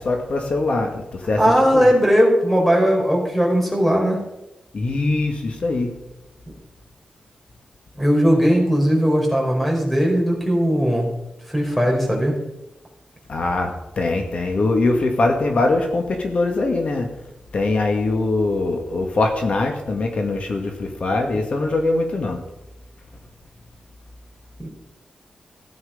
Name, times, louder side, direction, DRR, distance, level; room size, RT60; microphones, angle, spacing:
voice 1, 0.0-1.4 1.7-1.9 4.7-5.9 13.3-17.1 17.5-22.4, left 2 dB, 60° left, 3 dB, 2.0 m, -22 dB
voice 2, 1.4-4.2 8.0-11.1 11.5-12.4 24.6-24.7, equal, 5° left, -1 dB, 4.4 m, -18 dB
15.5 x 9.5 x 5.1 m, 0.92 s
wide cardioid pair, 120°, 2 cm